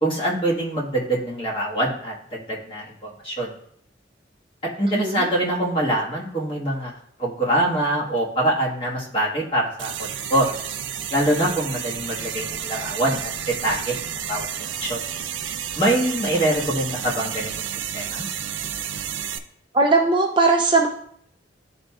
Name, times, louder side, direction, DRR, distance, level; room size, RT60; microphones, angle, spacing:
voice 1, 0.0-3.5 4.8-6.9 7.2-10.5 11.1-14.5 14.8-15.0 15.7-17.6 17.9-18.2, right 1 dB, 30° left, -4 dB, 1.5 m, -24 dB
voice 2, 4.9-5.3 19.7-20.9, right 3 dB, 25° right, 1 dB, 0.5 m, -18 dB
sound 1, 9.8-19.4, right 9 dB, 80° right, 0.5 m, -31 dB
11.5 x 4.3 x 2.3 m, 0.67 s
head